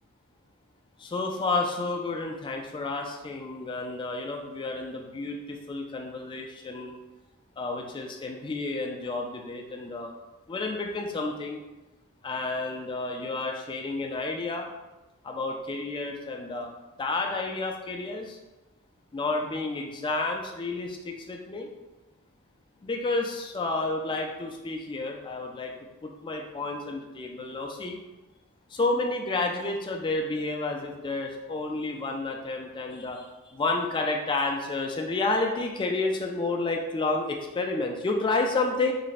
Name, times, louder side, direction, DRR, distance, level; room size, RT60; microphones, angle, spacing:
voice 1, 1.0-7.0 7.6-10.1 10.5-11.6 12.2-14.7 15.2-16.7 17.0-18.4 19.1-21.7 22.8-25.7 26.0-28.0 28.7-38.9, left 3 dB, 20° left, 1 dB, 0.3 m, -30 dB
3.3 x 2.1 x 4.0 m, 1.1 s
head